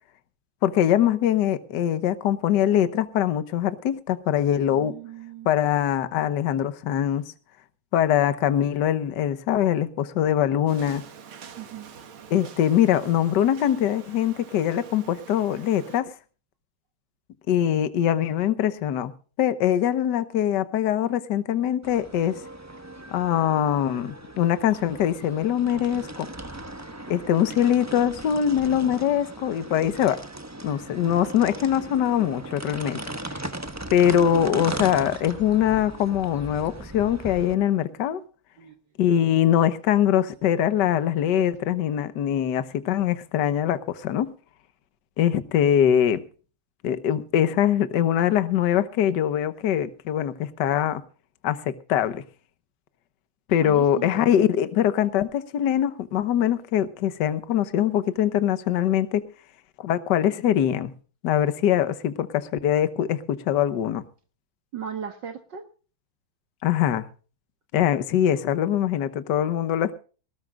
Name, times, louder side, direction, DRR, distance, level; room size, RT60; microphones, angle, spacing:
voice 1, 0.6-4.9 5.4-7.3 7.9-11.0 12.3-16.1 17.5-19.1 19.4-22.4 23.1-26.3 27.1-30.2 30.6-33.0 33.9-38.2 39.0-44.3 45.2-46.2 46.8-51.0 51.4-52.2 53.5-59.2 59.8-60.9 61.2-64.0 66.6-67.0 67.7-70.0, left 10 dB, 60° left, 1.5 m, -23 dB
voice 2, 4.7-5.5 11.6-11.9 38.6-38.7 53.6-54.2 64.7-65.6, right 8 dB, 60° right, 1.9 m, -37 dB
sound 1, 10.7-16.0, right 7 dB, 75° right, 2.3 m, -46 dB
sound 2, 21.8-37.5, right 1 dB, 15° right, 0.5 m, -38 dB
19.5 x 18.5 x 2.4 m
omnidirectional pair, 2.3 m